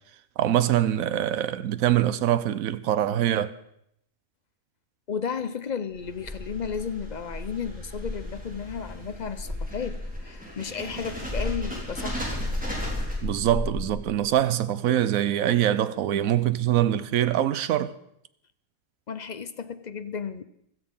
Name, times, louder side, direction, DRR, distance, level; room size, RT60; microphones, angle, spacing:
voice 1, 0.4-3.5 13.2-17.9, right 11 dB, 70° right, 1.1 m, -24 dB
voice 2, 5.1-12.3 19.1-20.4, left 6 dB, 45° left, 0.6 m, -33 dB
sound 1, 5.9-14.2, left 1 dB, 5° right, 4.0 m, -33 dB
16.0 x 13.5 x 5.5 m
omnidirectional pair, 1.5 m